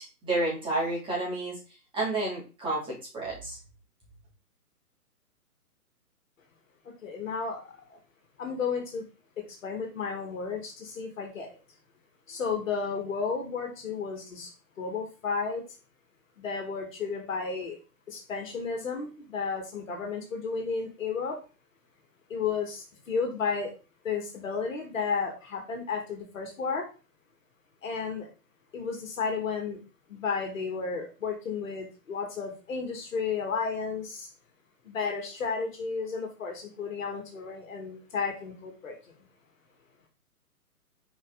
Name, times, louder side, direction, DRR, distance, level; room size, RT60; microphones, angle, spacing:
voice 1, 0.0-1.6 1.9-3.6, right 2 dB, 10° right, -6 dB, 3.4 m, -30 dB
voice 2, 7.0-8.0 8.4-9.1 9.4-11.5 12.3-14.5 14.8-15.6 16.4-17.8 18.1-21.4 22.3-23.7 24.0-26.9 27.8-28.3 28.7-29.8 30.1-34.3 34.8-39.0, left 5 dB, 55° left, 2 dB, 2.5 m, -33 dB
6.4 x 5.1 x 4.0 m, 0.33 s
figure-of-eight pair, 140°, 46 cm